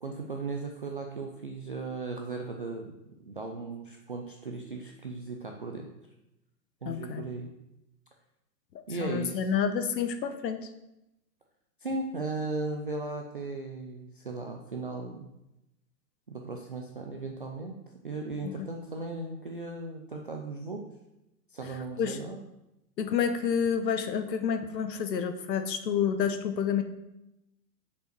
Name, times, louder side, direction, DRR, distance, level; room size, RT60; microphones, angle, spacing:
voice 1, 0.0-2.9 3.3-5.9 6.8-7.5 8.9-9.5 11.8-15.3 16.3-20.9 21.5-22.4, right 3 dB, 35° right, 1 dB, 0.4 m, -37 dB
voice 2, 6.8-7.3 9.0-10.6 18.4-18.5 22.0-22.2 23.0-26.8, left 7 dB, 80° left, 8 dB, 1.2 m, -29 dB
6.4 x 5.4 x 6.6 m, 0.91 s
hypercardioid pair, 170°, 50 cm